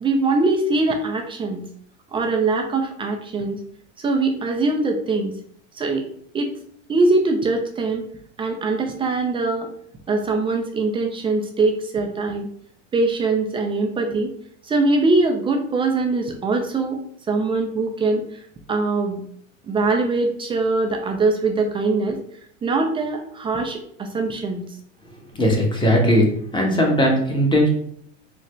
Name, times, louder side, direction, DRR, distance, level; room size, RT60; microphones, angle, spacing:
voice 1, 0.0-1.6 2.1-3.6 4.0-5.3 5.7-6.1 6.3-6.5 6.9-8.0 8.4-9.7 10.1-12.5 12.9-14.3 14.6-17.0 17.3-18.4 18.7-19.2 19.7-22.2 22.6-24.6, right 3 dB, 15° right, 3 dB, 0.3 m, -22 dB
voice 2, 25.3-26.3 26.5-27.7, equal, 10° left, 0 dB, 1.0 m, -18 dB
4.0 x 2.1 x 3.1 m, 0.65 s
hypercardioid pair, 100°, 38 cm